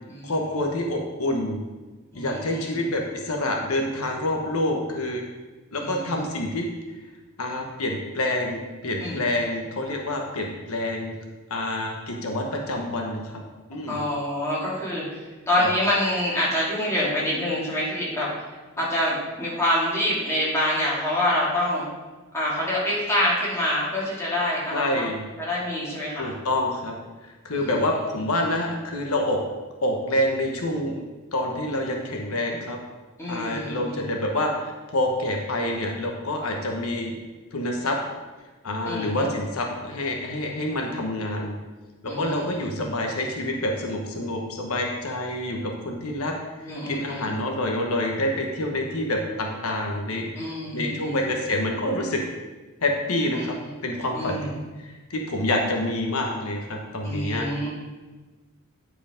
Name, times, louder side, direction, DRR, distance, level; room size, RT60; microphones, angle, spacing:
voice 1, 0.2-1.6 2.1-5.2 5.7-6.7 7.4-11.1 11.5-13.4 13.7-14.0 15.6-15.7 24.7-25.2 26.2-27.0 27.2-29.4 29.8-31.0 31.3-32.8 33.3-37.2 37.5-38.0 38.6-41.5 42.0-46.3 46.9-50.3 50.7-52.2 52.8-53.5 53.8-54.5 54.8-57.7, left 1 dB, 85° left, 1 dB, 1.2 m, -27 dB
voice 2, 2.1-2.8 5.8-6.1 9.0-9.2 13.9-18.5 18.8-21.8 22.3-25.0 25.4-26.3 27.5-27.7 33.2-34.1 38.9-39.3 42.1-42.9 46.6-47.2 50.4-51.2 53.3-53.5 54.1-54.6 57.0-57.7, left 1 dB, 15° left, -7 dB, 2.8 m, -26 dB
9.7 x 4.9 x 5.2 m, 1.3 s
head